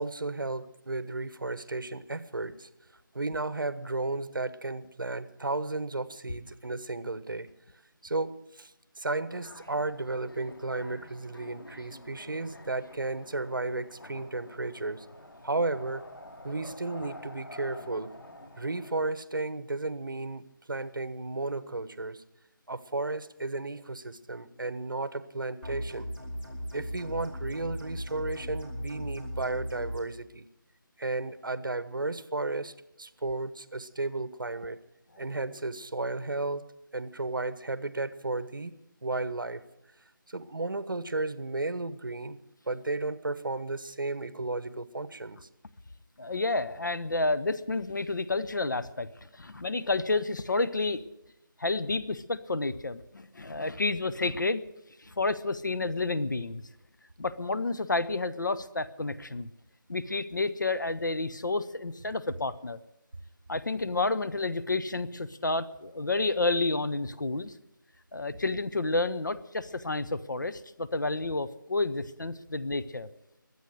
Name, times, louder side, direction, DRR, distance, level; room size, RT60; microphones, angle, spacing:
voice 1, 0.0-2.7 3.1-7.5 8.0-15.1 15.4-16.1 16.4-18.2 18.6-22.2 22.7-26.1 26.7-30.4 31.0-34.8 35.2-36.7 36.9-38.7 39.0-39.6 40.3-42.4 42.7-45.4, right 2 dB, 70° right, 14 dB, 1.2 m, -33 dB
sound 1, 9.3-19.0, left 1 dB, 90° left, 2.9 m, -48 dB
sound 2, 25.6-30.0, equal, 10° left, 2.6 m, -37 dB
voice 2, 46.2-51.0 51.6-54.6 55.0-56.6 57.2-59.5 59.9-62.8 63.5-67.5 68.1-73.1, left 3 dB, 60° left, 14 dB, 1.0 m, -30 dB
22.5 x 8.4 x 6.5 m, 0.91 s
figure-of-eight pair, 175°, 11 cm